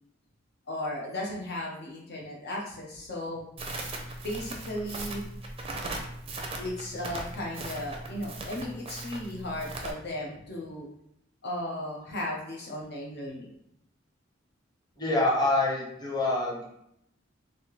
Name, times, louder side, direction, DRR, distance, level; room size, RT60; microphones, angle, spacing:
voice 1, 0.7-3.4 4.2-5.3 6.6-10.9 11.4-13.5, left 1 dB, 55° left, -2 dB, 0.8 m, -35 dB
Crackle, 3.6-9.9, right 2 dB, 30° right, 0.6 m, -38 dB
voice 2, 15.0-16.6, left 2 dB, 20° left, -5 dB, 1.0 m, -26 dB
4.2 x 2.7 x 3.1 m, 0.75 s
head